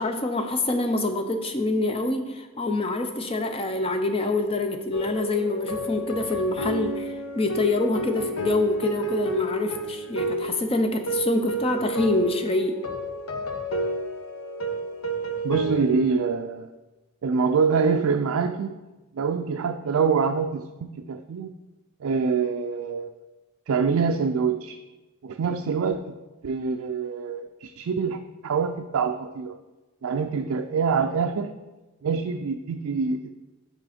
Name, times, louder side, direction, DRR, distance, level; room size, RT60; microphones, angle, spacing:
voice 1, 0.0-7.1 7.3-12.8, left 2 dB, 25° left, 6 dB, 0.6 m, -26 dB
sound 1, 4.9-16.1, right 1 dB, 90° left, 0.8 m, -31 dB
voice 2, 15.4-16.7 17.2-18.8 19.1-21.5 22.0-23.1 23.7-24.8 25.2-26.1 26.4-29.6 30.0-31.5 32.0-33.3, right 5 dB, 70° right, 5 dB, 0.3 m, -25 dB
6.0 x 4.9 x 5.0 m, 1.1 s
head